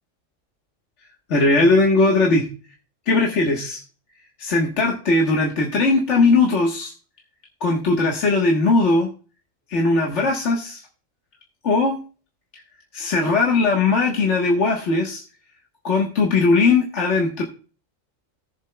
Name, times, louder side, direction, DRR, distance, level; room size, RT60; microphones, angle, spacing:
voice 1, 1.3-2.5 3.1-3.8 4.4-6.9 7.6-9.1 9.7-10.8 11.6-12.0 12.9-15.2 15.8-17.4, left 3 dB, 60° left, 0 dB, 1.6 m, -19 dB
18.5 x 7.4 x 2.2 m, 0.37 s
omnidirectional pair, 1.4 m